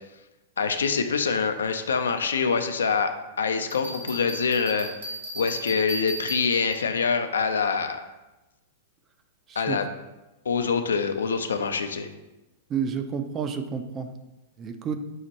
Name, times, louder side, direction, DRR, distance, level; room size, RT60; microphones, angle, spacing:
voice 1, 0.6-3.1 3.4-8.0 9.6-9.9 10.5-12.1, left 5 dB, 75° left, 8 dB, 0.3 m, -25 dB
Bell, 3.7-7.0, equal, 70° right, 1.3 m, -35 dB
voice 2, 12.7-14.1 14.6-15.0, right 7 dB, 25° right, 7 dB, 0.4 m, -30 dB
6.2 x 2.1 x 2.8 m, 1.0 s
figure-of-eight pair, 100°, 0 cm